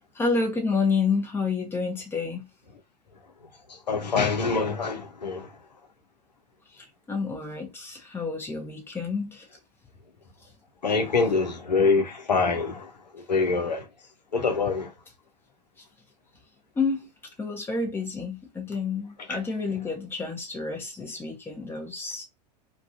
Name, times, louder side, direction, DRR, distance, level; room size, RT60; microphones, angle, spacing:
voice 1, 0.1-2.4 6.7-9.5 15.8-15.9 16.7-17.1 17.4-22.2, left 4 dB, 10° left, 0.8 m, -29 dB
voice 2, 3.9-5.5 10.8-12.9 13.3-13.8 14.3-14.9, left 4 dB, 80° left, 0.6 m, -24 dB
2.5 x 2.2 x 2.4 m
figure-of-eight pair, 90°, 21 cm